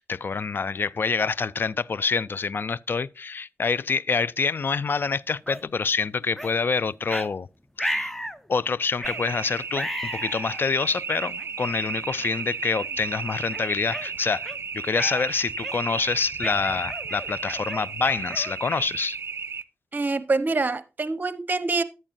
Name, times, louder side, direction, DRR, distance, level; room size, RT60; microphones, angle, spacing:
voice 1, 0.0-7.5 7.8-8.2 8.5-19.2, left 5 dB, 50° left, 0.4 m, -26 dB
sound 1, 5.5-5.6 6.4-6.5 7.1-7.3 7.8-8.4 9.0-9.2 9.7-10.7 11.4-11.5 12.2-12.4 12.8-13.0 13.5-14.6 14.9-15.3 15.6-16.0 16.4-19.0, equal, 5° left, 0.6 m, -33 dB
sound 2, 9.0-19.6, right 6 dB, 60° right, 0.5 m, -34 dB
voice 2, 19.9-21.8, right 3 dB, 40° right, 0.9 m, -25 dB
11.0 x 8.7 x 2.6 m
cardioid pair, 60°, 5 cm